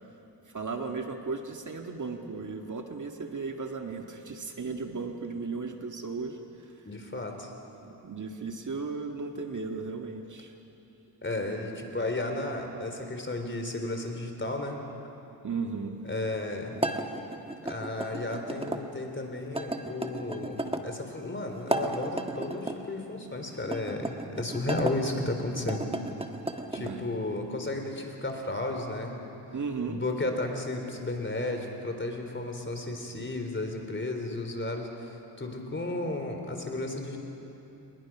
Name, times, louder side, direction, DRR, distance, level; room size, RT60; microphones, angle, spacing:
voice 1, 0.5-6.4 6.9-7.0 7.8-10.5 15.4-16.0 26.8-27.1 29.5-30.0, right 4 dB, 45° right, 3 dB, 1.8 m, -35 dB
voice 2, 6.9-7.5 11.2-14.8 16.0-16.8 17.6-25.9 26.7-29.2 29.9-37.2, left 2 dB, 25° left, 4 dB, 3.7 m, -33 dB
sound 1, 16.8-18.8 19.5-20.9 21.6-22.8 23.6-25.0 25.6-26.9, right 1 dB, 15° right, 1.6 m, -34 dB
28.5 x 21.0 x 6.1 m, 2.9 s
cardioid pair, 70°, 42 cm